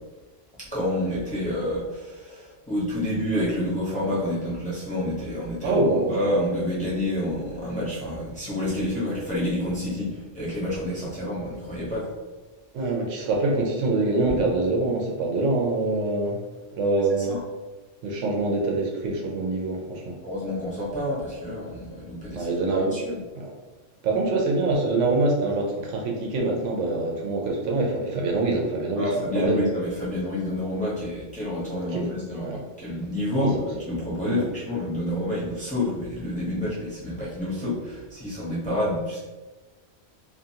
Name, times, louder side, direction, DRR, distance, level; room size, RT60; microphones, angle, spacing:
voice 1, 0.6-12.1 17.3-17.4 20.2-22.5 22.8-23.2 29.0-32.5 32.8-39.2, left 1 dB, 5° left, -9 dB, 0.7 m, -28 dB
voice 2, 5.6-6.2 12.7-16.4 16.7-17.4 18.0-20.2 22.3-23.0 23.3-23.5 24.0-29.6 31.9-32.0 32.4-32.6 33.4-33.6 34.2-34.5, right 2 dB, 80° right, 0 dB, 0.9 m, -25 dB
2.6 x 2.4 x 2.7 m, 1.2 s
omnidirectional pair, 1.2 m